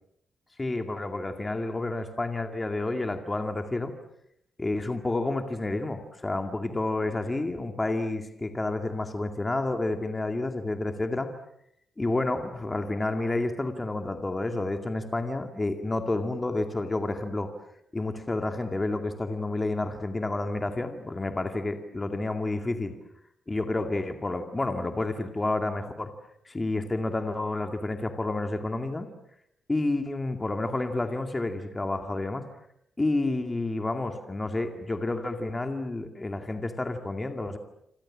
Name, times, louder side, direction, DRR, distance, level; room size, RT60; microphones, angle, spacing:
voice 1, 0.6-3.9 4.6-11.3 12.0-17.5 17.9-22.9 23.5-26.1 26.5-29.1 29.7-32.4 33.0-37.6, left 2 dB, 15° left, 6 dB, 2.3 m, -30 dB
27.5 x 26.5 x 7.5 m, 0.75 s
wide cardioid pair, 155°, 0 cm